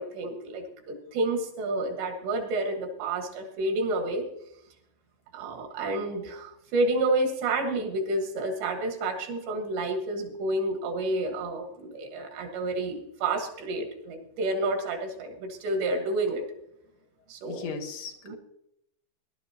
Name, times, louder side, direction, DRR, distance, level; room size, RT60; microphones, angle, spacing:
voice 1, 0.0-4.3 5.3-16.4 17.3-17.7 18.3-18.4, right 2 dB, 75° right, 4 dB, 3.8 m, -30 dB
voice 2, 17.4-18.4, left 5 dB, 75° left, 2 dB, 3.1 m, -37 dB
18.5 x 11.5 x 2.9 m, 0.77 s
omnidirectional pair, 5.0 m